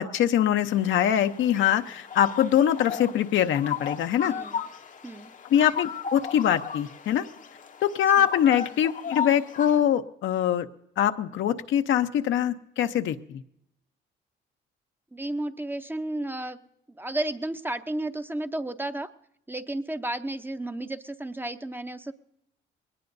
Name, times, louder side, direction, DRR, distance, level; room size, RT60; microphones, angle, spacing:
voice 1, 0.0-4.3 5.5-7.3 7.8-10.7 11.0-13.4, left 10 dB, 75° left, 8 dB, 0.8 m, -23 dB
sound 1, 0.7-9.8, left 7 dB, 40° left, 0.7 m, -36 dB
voice 2, 4.2-4.6 5.0-5.3 8.2-8.3 15.1-16.6 17.0-19.1 19.5-22.1, right 1 dB, 10° right, 9 dB, 0.7 m, -32 dB
21.0 x 18.5 x 2.7 m, 0.77 s
cardioid pair, 90°, 20 cm